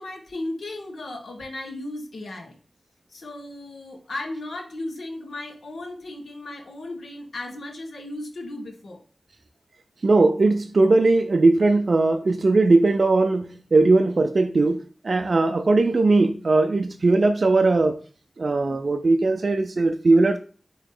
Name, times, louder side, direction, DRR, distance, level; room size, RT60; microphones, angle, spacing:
voice 1, 0.0-2.6 3.1-9.0, left 2 dB, 90° left, 1.3 m, -35 dB
voice 2, 10.0-18.0 18.4-20.4, right 3 dB, 60° right, 0.4 m, -19 dB
8.5 x 3.0 x 3.7 m
wide cardioid pair, 75°, 0 cm